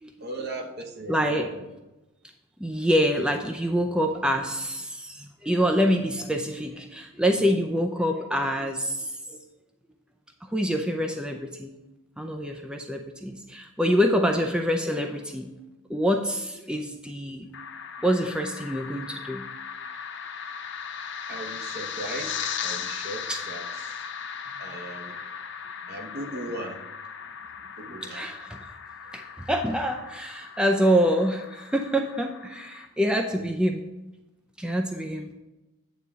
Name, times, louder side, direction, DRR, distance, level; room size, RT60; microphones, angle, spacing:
voice 1, 0.2-1.6 21.3-24.1 24.6-25.2 25.9-26.8 27.8-28.3 29.0-29.1 33.3-33.5, right 1 dB, 55° right, 2 dB, 1.1 m, -38 dB
voice 2, 1.1-1.5 2.6-9.4 10.5-11.7 12.2-15.5 15.9-17.5 18.0-19.5 23.3-23.4 27.9-28.6 29.1-33.9 34.6-35.3, equal, 5° right, 4 dB, 0.5 m, -26 dB
sound 1, 17.5-32.9, left 7 dB, 65° left, 0.6 m, -37 dB
9.3 x 3.6 x 6.8 m, 1.0 s
head